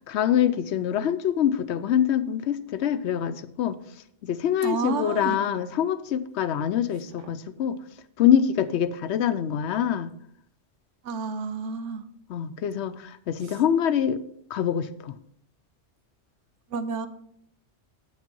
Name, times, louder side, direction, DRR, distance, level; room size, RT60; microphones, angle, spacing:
voice 1, 0.1-3.8 4.2-7.8 8.2-10.1 12.3-14.2 14.5-15.1, left 9 dB, 70° left, 14 dB, 0.8 m, -25 dB
voice 2, 4.6-5.4 7.2-7.3 11.0-12.0 16.7-17.1, right 5 dB, 85° right, 12 dB, 1.1 m, -30 dB
8.1 x 6.3 x 5.3 m, 0.70 s
omnidirectional pair, 1.2 m